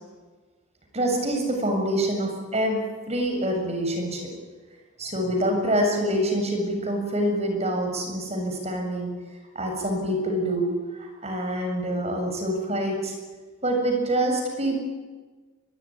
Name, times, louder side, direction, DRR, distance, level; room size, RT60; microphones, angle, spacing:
voice 1, 0.9-4.3 5.0-9.1 9.6-13.1 13.6-14.8, right 1 dB, 30° right, 3 dB, 7.2 m, -26 dB
22.5 x 22.5 x 9.9 m, 1.4 s
head